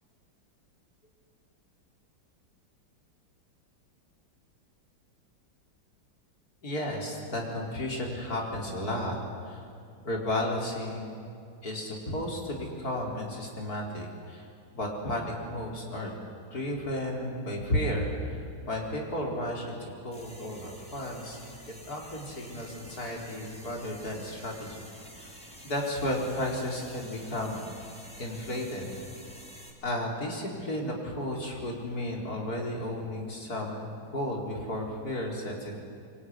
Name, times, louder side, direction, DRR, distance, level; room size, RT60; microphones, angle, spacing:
voice 1, 6.6-9.2 9.4-9.7 10.0-11.3 11.6-14.5 14.7-16.1 16.5-21.4 21.9-24.8 25.2-25.4 25.6-27.6 28.2-29.0 29.8-35.7, left 1 dB, 45° left, 0 dB, 4.8 m, -33 dB
sound 1, 20.1-29.7, equal, 5° left, 3.7 m, -49 dB
25.0 x 24.0 x 9.7 m, 2.4 s
omnidirectional pair, 2.2 m